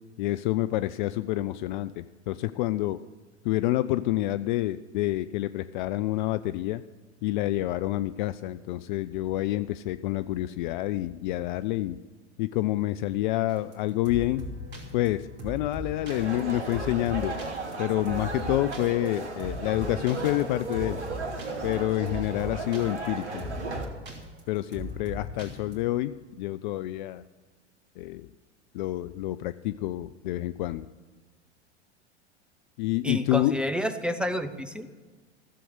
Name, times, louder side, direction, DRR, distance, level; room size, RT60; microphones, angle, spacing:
voice 1, 0.2-3.0 3.4-6.8 7.2-12.0 12.4-14.4 14.9-17.4 17.8-21.0 21.6-23.5 24.5-27.2 28.0-28.3 28.7-30.9 32.8-33.5, left 16 dB, 45° left, 14 dB, 0.4 m, -28 dB
sound 1, 13.5-25.8, left 1 dB, 30° right, 2.9 m, -40 dB
sound 2, 16.1-23.9, right 3 dB, 75° right, 2.0 m, -35 dB
voice 2, 33.0-35.0, equal, 5° right, 9 dB, 0.7 m, -29 dB
14.0 x 7.6 x 6.7 m, 1.4 s
figure-of-eight pair, 90°, 35 cm